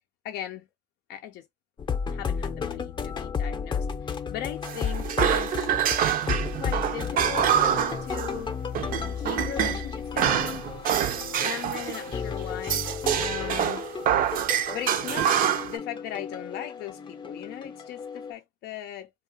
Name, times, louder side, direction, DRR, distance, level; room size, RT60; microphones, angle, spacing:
voice 1, 0.2-0.6 1.1-1.5 2.1-5.7 6.6-8.5 9.2-10.7 11.4-12.9 13.2-13.8 14.7-15.3 15.7-19.1, left 11 dB, 75° left, 0.4 m, -38 dB
sound 1, 1.8-18.3, left 6 dB, 30° left, 0.5 m, -33 dB
sound 2, 4.6-8.5 8.7-9.8 10.2-12.1 12.6-15.8, right 9 dB, 55° right, 0.5 m, -26 dB
2.8 x 2.3 x 2.7 m
cardioid pair, 110°, 17 cm